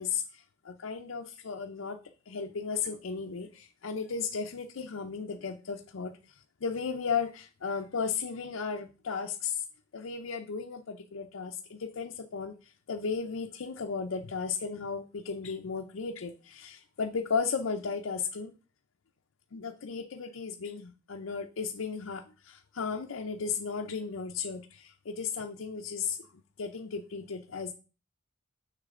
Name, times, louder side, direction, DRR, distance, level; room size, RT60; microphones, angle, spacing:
voice 1, 0.0-2.0 2.3-9.7 9.9-18.5 19.5-27.7, left 5 dB, 80° left, 4 dB, 0.6 m, -35 dB
6.7 x 6.6 x 3.6 m, 0.34 s
head